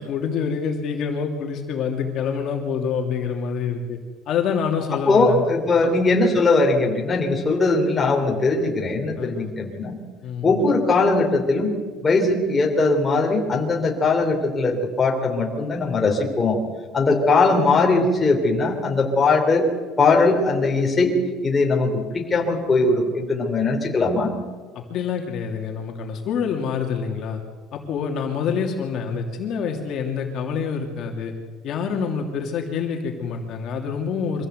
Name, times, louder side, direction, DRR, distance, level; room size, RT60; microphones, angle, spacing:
voice 1, 0.0-4.0 4.3-5.4 5.8-5.9 9.2-9.5 10.2-10.5 24.7-27.4 27.7-31.3 31.6-34.5, left 6 dB, 45° left, 1 dB, 2.9 m, -26 dB
voice 2, 5.1-10.0 10.4-11.7 12.0-16.6 16.9-19.7 20.0-21.1 21.4-24.3, left 3 dB, 15° left, 0 dB, 3.2 m, -20 dB
25.0 x 16.0 x 8.1 m, 1.5 s
cardioid pair, 170°, 0 cm